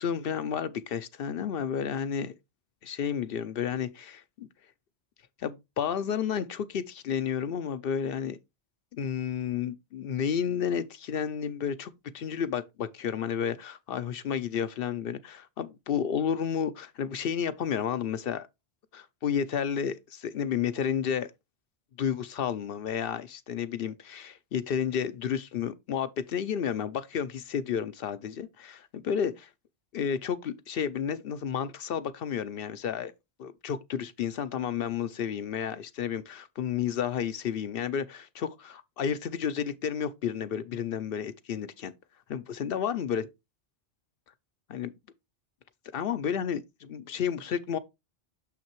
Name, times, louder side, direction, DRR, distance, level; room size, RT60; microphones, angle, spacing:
voice 1, 0.0-2.3 2.8-4.5 5.4-8.4 8.9-18.5 18.9-21.3 22.0-29.5 29.9-33.1 33.4-41.9 42.3-43.2 44.7-44.9 45.9-47.8, left 8 dB, 65° left, 0.7 m, -31 dB
6.4 x 5.9 x 2.9 m
omnidirectional pair, 1.1 m